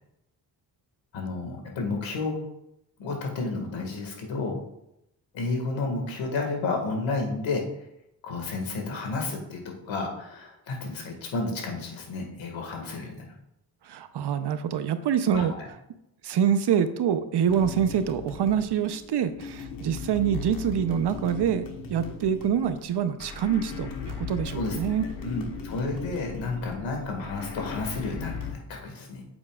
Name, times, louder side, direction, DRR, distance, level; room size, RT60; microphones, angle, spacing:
voice 1, 1.1-2.4 3.0-4.6 5.3-7.6 8.2-13.3 15.3-15.7 24.5-24.8 25.2-29.2, left 3 dB, 85° left, 2 dB, 1.9 m, -31 dB
voice 2, 13.8-15.5 16.2-25.0, right 8 dB, 60° right, 11 dB, 0.7 m, -26 dB
sound 1, 17.5-28.5, left 5 dB, 45° left, 1.3 m, -38 dB
8.6 x 7.1 x 2.4 m, 0.82 s
cardioid pair, 80°, 45 cm